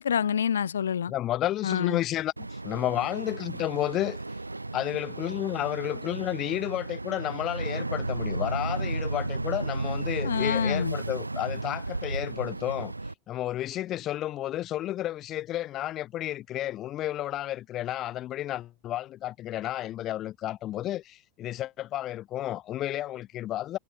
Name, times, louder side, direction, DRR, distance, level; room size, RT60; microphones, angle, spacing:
voice 1, 0.0-1.1 1.6-2.0 10.2-11.0, left 8 dB, 70° left, 1.5 m, -27 dB
voice 2, 1.1-4.2 4.7-12.9 13.3-23.8, left 13 dB, 35° left, 1.5 m, -32 dB
Boat Water vehicle, 2.4-13.1, right 2 dB, 85° right, 0.6 m, -33 dB
figure-of-eight pair, 85°, 0 cm